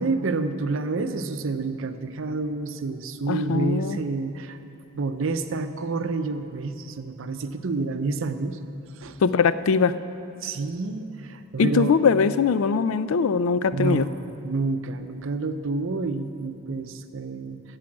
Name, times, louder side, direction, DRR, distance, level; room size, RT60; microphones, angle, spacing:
voice 1, 0.0-4.6 4.9-8.6 9.0-9.2 10.4-11.9 13.7-17.6, right 3 dB, 65° right, 9 dB, 0.6 m, -29 dB
voice 2, 3.3-4.0 9.2-9.9 11.6-14.1, left 5 dB, 75° left, 14 dB, 0.4 m, -21 dB
13.5 x 4.9 x 8.6 m, 2.7 s
head